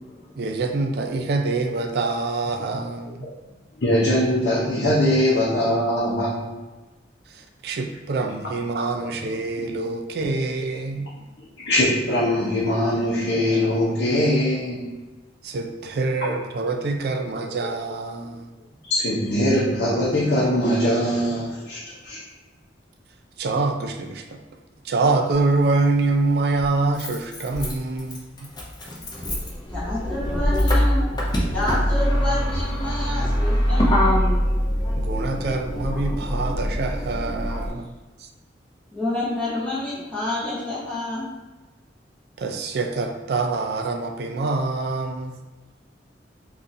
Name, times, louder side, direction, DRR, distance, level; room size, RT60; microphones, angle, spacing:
voice 1, 0.4-3.3 7.3-11.1 15.4-18.5 23.4-24.4 24.8-28.2 34.9-37.9 38.2-38.3 42.4-45.4, right 3 dB, 60° right, 5 dB, 0.3 m, -25 dB
voice 2, 3.8-6.5 9.6-9.7 11.6-14.9 16.2-16.3 18.9-22.2, left 1 dB, 65° left, -8 dB, 0.7 m, -22 dB
Motor vehicle (road), 25.3-25.4 26.6-37.7, equal, 25° left, 0.5 m, -23 dB
voice 3, 29.7-31.0 31.5-34.1 38.9-41.3, left 2 dB, 10° left, -9 dB, 0.9 m, -28 dB
3.9 x 2.4 x 2.6 m, 1.2 s
head